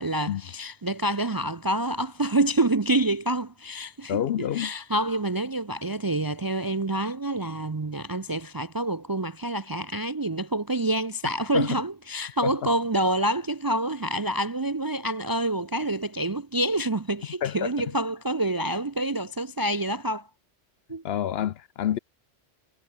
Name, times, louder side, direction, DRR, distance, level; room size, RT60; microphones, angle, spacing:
voice 1, 0.0-20.3 20.9-21.0, right 1 dB, 30° right, 0.4 m, -27 dB
voice 2, 4.1-4.7 11.5-11.8 12.4-12.7 17.4-17.7 21.0-22.0, left 10 dB, 65° left, 0.8 m, -28 dB
omnidirectional pair, 1.2 m